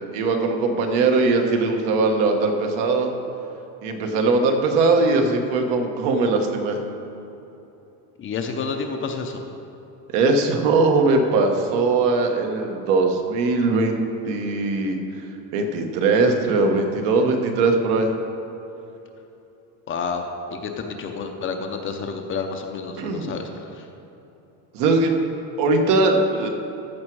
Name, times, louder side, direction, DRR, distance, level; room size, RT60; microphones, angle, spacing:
voice 1, 0.0-3.1 3.8-6.8 10.1-15.2 15.5-18.1 23.0-23.3 24.7-25.3 25.6-26.5, right 3 dB, 70° right, 3 dB, 1.4 m, -20 dB
voice 2, 8.2-9.4 19.9-23.9, left 5 dB, 30° left, 4 dB, 0.6 m, -30 dB
14.0 x 6.1 x 4.7 m, 3.0 s
cardioid pair, 160°, 42 cm